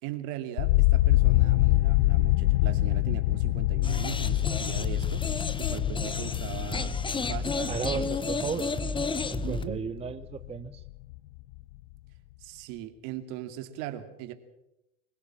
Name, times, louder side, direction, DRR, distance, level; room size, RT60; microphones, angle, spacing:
voice 1, 0.0-8.1 9.4-9.8 12.4-14.3, right 12 dB, 60° right, 8 dB, 2.7 m, -39 dB
sound 1, 0.6-10.6 10.9-11.6, left 18 dB, 65° left, 0.9 m, -26 dB
sound 2, 3.8-9.7, left 4 dB, 15° left, 1.0 m, -32 dB
voice 2, 7.7-8.7 9.3-10.8, right 6 dB, 15° right, 11 dB, 0.8 m, -34 dB
24.5 x 16.5 x 7.6 m, 0.90 s
hypercardioid pair, 100°, 35 cm